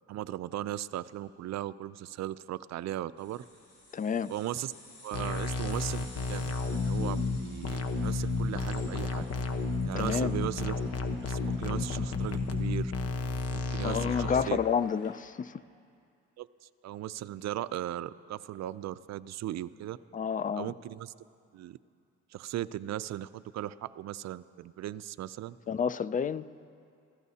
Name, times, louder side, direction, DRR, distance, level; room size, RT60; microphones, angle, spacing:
voice 1, 0.1-3.4 4.3-4.7 5.0-9.2 9.9-10.8 11.2-12.9 13.5-14.6 16.4-16.5 16.8-20.0 20.6-21.1 21.5-21.8 22.3-25.6, right 13 dB, 60° right, 0.5 m, -37 dB
sound 1, 3.2-15.1, left 2 dB, 75° left, 4.0 m, -55 dB
voice 2, 3.9-4.3 10.0-10.4 13.8-15.6 20.1-20.8 25.7-26.5, left 7 dB, 30° left, 0.4 m, -30 dB
sound 2, 5.1-14.4, left 3 dB, 50° left, 1.1 m, -31 dB
27.5 x 15.0 x 2.8 m
cardioid pair, 90°, 30 cm